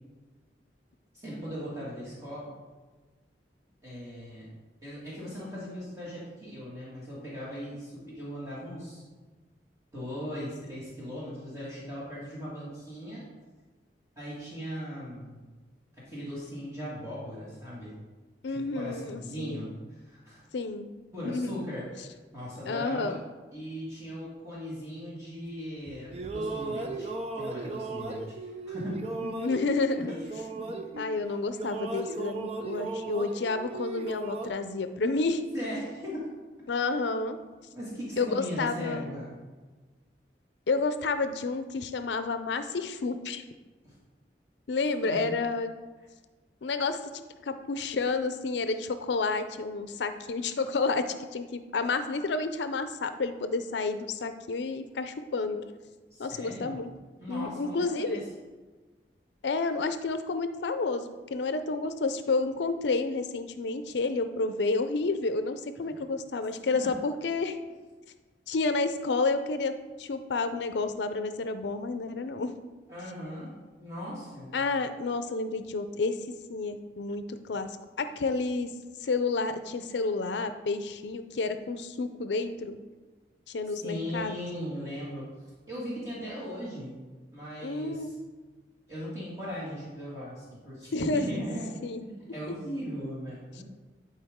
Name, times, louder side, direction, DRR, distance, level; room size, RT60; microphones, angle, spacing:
voice 1, 1.1-2.5 3.8-4.5 4.8-9.0 9.9-13.2 14.2-15.4 15.9-18.0 18.5-20.4 21.1-23.1 23.5-27.1 27.4-29.1 30.6-30.7 35.5-36.3 37.7-39.3 43.8-43.9 45.0-45.3 56.1-56.8 57.2-58.2 72.9-73.5 73.8-74.5 83.7-85.3 85.7-87.0 87.3-88.2 88.9-91.7 92.0-93.6, equal, 15° right, -8 dB, 2.0 m, -38 dB
voice 2, 18.4-19.7 20.5-20.9 21.2-21.6 22.7-23.2 29.2-30.1 31.0-35.4 36.7-37.4 38.2-39.1 40.7-43.4 44.7-45.7 46.6-47.0 47.4-55.7 56.2-56.9 57.3-58.2 59.4-67.6 68.5-69.7 70.0-72.6 74.5-76.2 76.5-78.7 79.0-82.8 83.5-84.4 87.6-88.1 90.9-91.4 91.8-92.0 92.5-92.6, left 3 dB, 75° left, 9 dB, 0.5 m, -30 dB
sound 1, 25.9-31.2 31.5-34.5, right 3 dB, 35° right, 0.6 m, -36 dB
11.0 x 4.6 x 3.6 m, 1.3 s
head